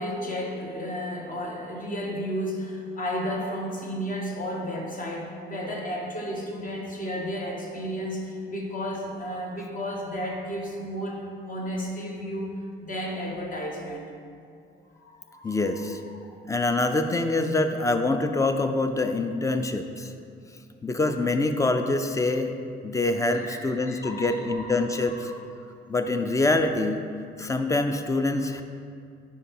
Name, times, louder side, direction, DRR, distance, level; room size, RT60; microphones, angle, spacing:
voice 1, 0.0-12.5 12.8-14.1 14.9-15.6 16.0-16.1 23.3-24.7 25.1-25.2, equal, 45° left, 0 dB, 1.0 m, -33 dB
voice 2, 15.4-16.0 16.4-20.1 20.8-22.5 22.8-25.3 25.9-27.0 27.4-28.6, left 2 dB, 15° left, 7 dB, 0.4 m, -25 dB
5.1 x 4.7 x 4.2 m, 2.4 s
cardioid pair, 90°, 20 cm